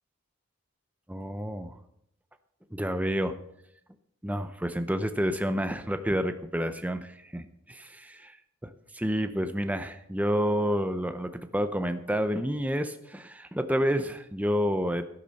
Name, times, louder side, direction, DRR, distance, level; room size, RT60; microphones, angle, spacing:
voice 1, 1.1-1.8 2.7-3.4 4.2-8.4 8.6-15.0, equal, 5° right, 9 dB, 0.6 m, -29 dB
12.0 x 12.0 x 4.1 m, 0.78 s
head